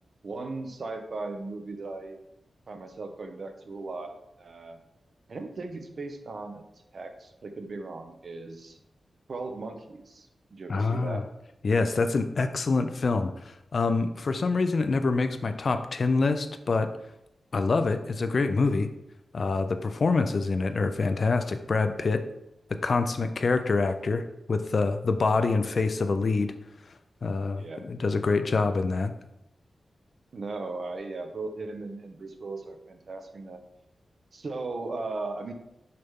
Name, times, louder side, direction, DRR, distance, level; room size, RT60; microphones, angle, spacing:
voice 1, 0.2-2.2 2.7-4.8 5.3-6.6 6.9-8.8 9.3-11.3 25.3-25.5 27.5-27.9 30.3-33.6 34.3-35.5, right 3 dB, 50° right, 6 dB, 0.8 m, -37 dB
voice 2, 10.7-11.2 11.6-16.9 17.5-18.9 19.3-22.2 22.8-24.2 24.5-26.5 27.2-29.1, left 3 dB, 45° left, 9 dB, 0.5 m, -26 dB
6.6 x 5.7 x 3.6 m, 0.86 s
wide cardioid pair, 150°, 0 cm